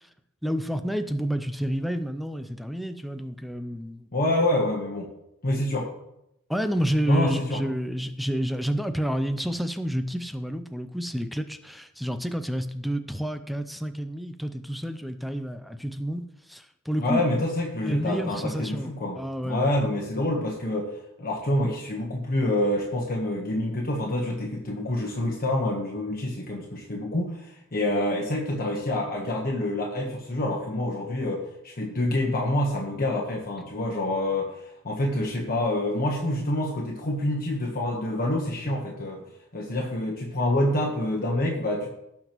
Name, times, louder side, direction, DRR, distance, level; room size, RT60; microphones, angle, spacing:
voice 1, 0.4-4.1 6.5-17.2 17.8-19.7, equal, ahead, 9 dB, 0.5 m, -29 dB
voice 2, 4.1-5.1 5.4-5.9 7.1-7.6 17.0-19.1 19.4-20.9 21.2-39.2 39.5-41.9, left 1 dB, 40° left, -1 dB, 1.2 m, -27 dB
17.0 x 6.0 x 3.0 m, 0.85 s
head